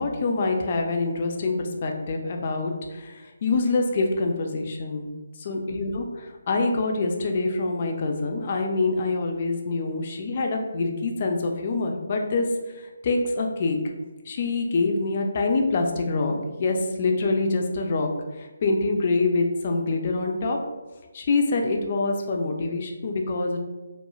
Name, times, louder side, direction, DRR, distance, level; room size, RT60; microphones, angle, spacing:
voice 1, 0.0-5.1 5.4-12.5 12.7-13.8 14.3-16.3 16.6-18.1 18.4-20.6 21.1-23.6, left 3 dB, 40° left, 3 dB, 0.3 m, -25 dB
3.0 x 2.0 x 2.2 m, 1.2 s
figure-of-eight pair, 160°, 0 cm